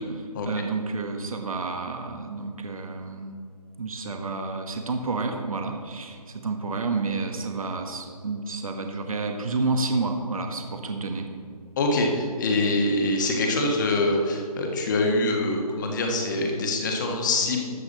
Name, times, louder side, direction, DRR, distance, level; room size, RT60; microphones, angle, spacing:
voice 1, 0.0-3.4 3.8-11.3, right 3 dB, 60° right, 4 dB, 1.5 m, -30 dB
voice 2, 11.8-17.6, left 2 dB, 30° left, 2 dB, 1.6 m, -24 dB
13.0 x 8.0 x 4.1 m, 2.2 s
figure-of-eight pair, 150°, 20 cm